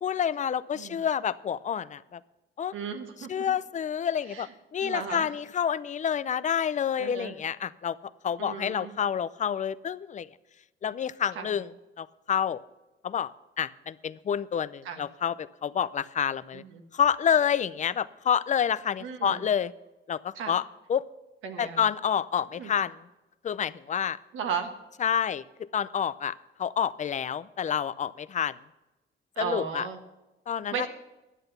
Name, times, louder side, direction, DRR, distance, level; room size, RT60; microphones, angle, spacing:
voice 1, 0.0-2.2 2.6-2.7 3.3-8.0 8.2-10.3 10.8-11.7 12.0-12.6 13.0-13.3 13.6-16.6 16.9-19.7 20.1-20.6 20.9-21.0 21.6-22.9 23.4-24.2 25.0-25.4 25.7-28.5 29.4-29.8 30.5-30.9, left 8 dB, 40° left, 17 dB, 0.5 m, -28 dB
voice 2, 2.7-3.5 4.3-4.5 4.8-5.3 7.0-7.4 8.4-8.9 11.3-11.5 14.8-15.0 16.5-16.8 19.0-19.4 20.3-20.5 21.4-21.8 22.6-22.7 24.3-24.7 29.4-30.0 30.7-30.9, right 7 dB, 85° right, 6 dB, 1.4 m, -35 dB
11.0 x 7.8 x 6.8 m, 1.0 s
cardioid pair, 90°, 20 cm